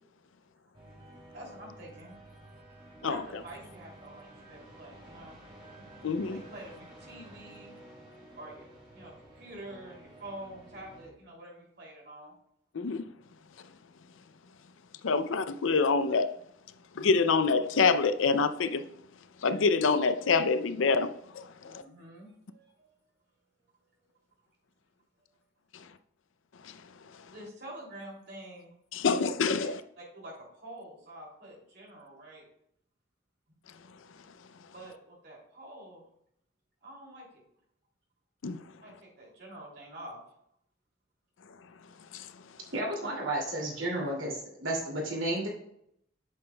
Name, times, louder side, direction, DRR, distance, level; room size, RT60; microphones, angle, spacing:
sound 1, 0.7-11.1, right 1 dB, 25° right, 2.4 m, -52 dB
voice 1, 1.3-2.1 3.0-5.4 6.3-7.8 8.4-12.3 15.2-15.3 21.6-22.9 25.2-25.3 27.3-28.7 29.6-29.7 30.0-32.4 34.7-36.0 36.8-37.4 38.8-40.2, right 1 dB, 55° right, 2.9 m, -47 dB
voice 2, 6.0-6.4 12.7-13.0 15.0-16.3 17.0-18.8 19.4-21.8 26.6-26.8 28.9-29.7 38.4-38.6 42.1-42.3, left 4 dB, 85° left, 0.5 m, -26 dB
voice 3, 42.7-45.5, right 1 dB, 85° right, 2.6 m, -32 dB
8.3 x 6.9 x 2.3 m
head